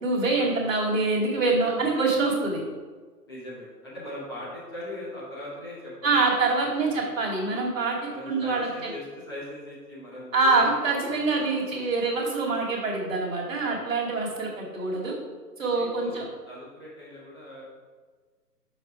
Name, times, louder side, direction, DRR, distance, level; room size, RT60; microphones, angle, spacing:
voice 1, 0.0-2.6 6.0-8.0 8.3-8.7 10.3-15.2 15.6-16.3, right 3 dB, 50° right, -3 dB, 2.1 m, -25 dB
voice 2, 3.3-7.2 8.1-10.7 11.1-12.1 13.6-14.2 15.7-17.9, left 1 dB, 15° left, -9 dB, 0.9 m, -41 dB
6.2 x 4.7 x 4.8 m, 1.4 s
figure-of-eight pair, 155°, 49 cm